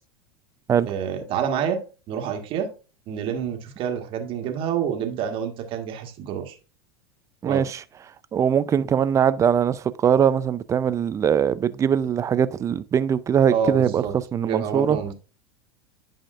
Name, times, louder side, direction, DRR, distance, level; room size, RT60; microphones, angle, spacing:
voice 1, 0.9-2.7 3.1-6.6 7.4-7.6 13.5-15.1, right 7 dB, 45° right, 1.6 m, -28 dB
voice 2, 7.4-7.8 8.3-14.0 14.3-15.0, right 8 dB, 25° right, 0.5 m, -21 dB
10.0 x 5.1 x 2.5 m
hypercardioid pair, 95°, 12 cm